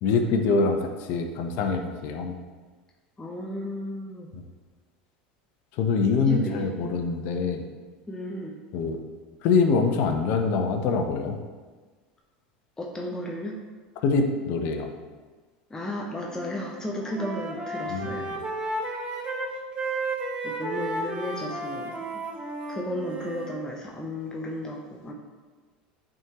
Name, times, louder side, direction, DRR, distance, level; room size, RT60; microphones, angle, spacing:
voice 1, 0.0-2.4 4.3-4.5 5.7-7.7 8.7-9.0 9.4-11.4 14.0-14.9 17.9-18.4, left 4 dB, 60° left, 4 dB, 0.8 m, -24 dB
voice 2, 3.2-4.3 6.2-6.9 8.1-8.6 12.8-13.7 15.7-18.3 20.4-22.2 22.7-25.1, equal, 15° left, -1 dB, 0.8 m, -34 dB
Wind instrument woodwind instrument, 16.3-16.7 17.0-23.5, right 2 dB, 25° right, 1.1 m, -33 dB
8.8 x 3.7 x 3.0 m, 1.4 s
hypercardioid pair, 90°, 4 cm